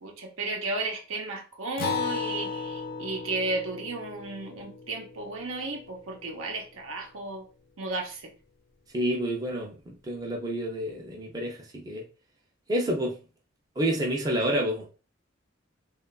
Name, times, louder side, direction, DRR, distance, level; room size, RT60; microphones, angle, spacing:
voice 1, 0.0-7.5 7.8-8.3, right 2 dB, 90° right, 0.7 m, -34 dB
Acoustic guitar, 1.8-6.7, left 5 dB, 50° left, 0.4 m, -36 dB
voice 2, 8.9-12.0 12.7-13.2 13.8-14.9, equal, 20° right, 0.5 m, -29 dB
2.9 x 2.3 x 2.3 m
head